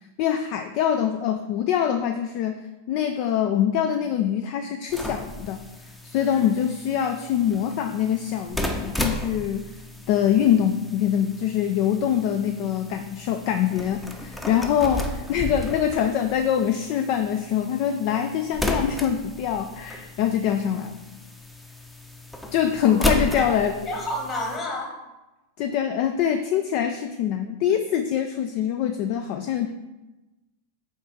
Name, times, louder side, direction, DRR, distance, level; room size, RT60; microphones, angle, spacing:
voice 1, 0.2-5.6 6.0-9.7 10.1-21.0 22.5-23.8 25.6-29.7, left 9 dB, 45° left, 7 dB, 0.4 m, -24 dB
sound 1, 4.9-24.6, left 1 dB, 5° left, 0.7 m, -34 dB
voice 2, 6.1-6.5 22.8-23.0 23.3-24.9, left 1 dB, 25° left, 0 dB, 1.6 m, -31 dB
5.7 x 4.3 x 4.6 m, 1.1 s
figure-of-eight pair, 90°, 0 cm